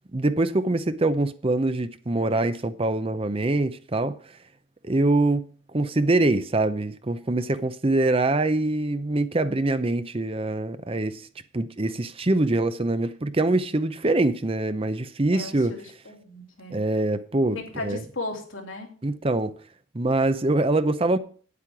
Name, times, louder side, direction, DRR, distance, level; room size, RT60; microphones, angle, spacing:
voice 1, 0.1-4.2 4.8-11.3 11.5-15.8 16.7-18.0 19.0-19.5 19.9-21.2, right 2 dB, 30° right, 0.7 m, -24 dB
voice 2, 15.3-16.8 17.7-18.9, left 2 dB, 80° left, 2.8 m, -36 dB
9.5 x 8.4 x 6.0 m
head